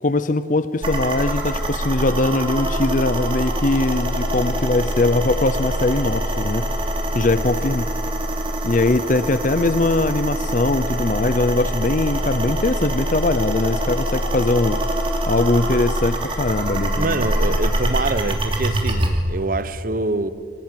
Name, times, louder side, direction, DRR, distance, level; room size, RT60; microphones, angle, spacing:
voice 1, 0.0-6.7 7.1-7.9 8.6-14.8 15.3-17.6, left 2 dB, 40° left, 0.6 m, -21 dB
sound 1, 0.8-19.1, right 1 dB, 30° right, 3.0 m, -24 dB
voice 2, 17.0-20.3, right 2 dB, 45° right, 0.9 m, -25 dB
25.0 x 18.5 x 9.4 m
head